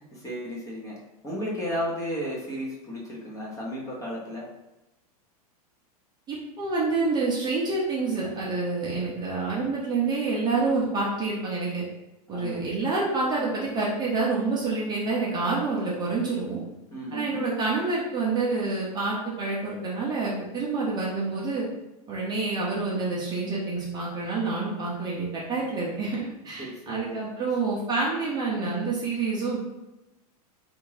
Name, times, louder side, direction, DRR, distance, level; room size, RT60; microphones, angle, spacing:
voice 1, 0.1-1.0 1.2-4.5 12.3-12.6 16.9-17.4 26.6-27.2, equal, 15° left, -4 dB, 1.0 m, -34 dB
voice 2, 6.3-11.8 12.3-16.6 17.1-21.7 22.1-29.6, right 3 dB, 20° right, -5 dB, 0.8 m, -28 dB
3.5 x 2.6 x 3.2 m, 0.96 s
supercardioid pair, 130°, 20 cm